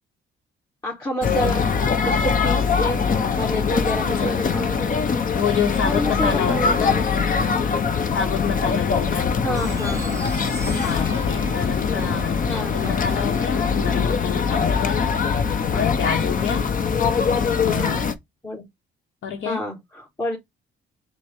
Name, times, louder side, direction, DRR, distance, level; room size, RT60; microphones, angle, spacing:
voice 1, 0.8-1.7 2.1-3.0 3.3-5.2 5.8-7.5 9.4-10.6 12.5-13.1 16.5-16.7 17.7-18.1 18.4-18.6 19.4-20.4, equal, 20° left, 1.8 m, -29 dB
sound 1, 1.2-18.1, left 5 dB, 45° left, 0.8 m, -22 dB
voice 2, 5.3-7.0 8.1-9.6 10.8-16.7 17.6-18.1 19.2-19.6, left 7 dB, 70° left, 0.9 m, -28 dB
sound 2, 9.5-15.7, right 3 dB, 15° right, 0.6 m, -40 dB
6.0 x 2.2 x 3.5 m
cardioid pair, 90°, 20 cm